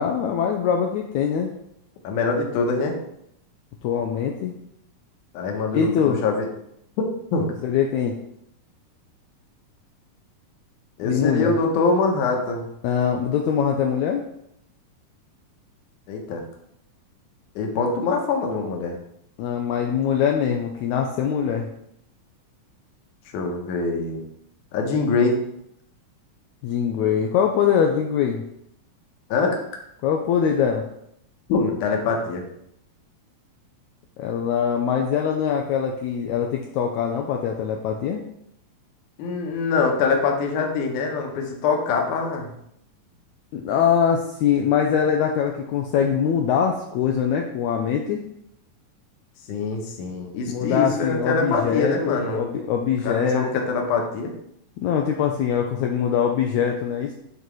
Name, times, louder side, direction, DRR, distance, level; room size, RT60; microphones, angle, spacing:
voice 1, 0.0-1.5 3.8-4.6 5.7-6.2 7.6-8.1 11.0-11.5 12.8-14.3 19.4-21.7 26.6-28.4 30.0-30.8 34.2-38.2 43.5-48.2 50.5-53.7 54.8-57.1, left 7 dB, 90° left, 2 dB, 1.6 m, -23 dB
voice 2, 2.0-3.0 5.3-6.5 7.0-7.5 11.0-12.7 16.1-16.4 17.6-19.0 23.3-24.2 24.7-25.4 29.3-29.6 31.5-32.4 39.2-42.5 49.5-52.4 53.0-54.3, left 4 dB, 70° left, 2 dB, 2.3 m, -24 dB
8.9 x 4.0 x 3.1 m, 0.75 s
omnidirectional pair, 3.9 m